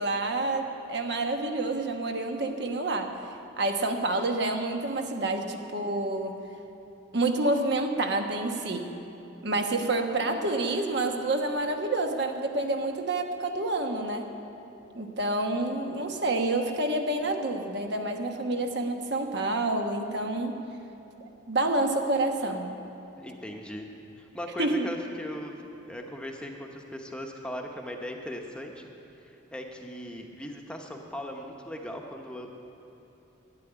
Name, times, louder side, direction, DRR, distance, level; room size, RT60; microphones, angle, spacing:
voice 1, 0.0-3.2 3.6-6.4 7.1-8.9 9.4-14.3 14.9-20.5 21.2-22.7 24.6-24.9, right 2 dB, 60° right, 4 dB, 1.2 m, -28 dB
voice 2, 23.2-23.9 24.2-25.5 25.9-28.9 29.2-32.6, left 1 dB, 5° left, 1 dB, 0.9 m, -38 dB
12.0 x 9.0 x 10.0 m, 3.0 s
head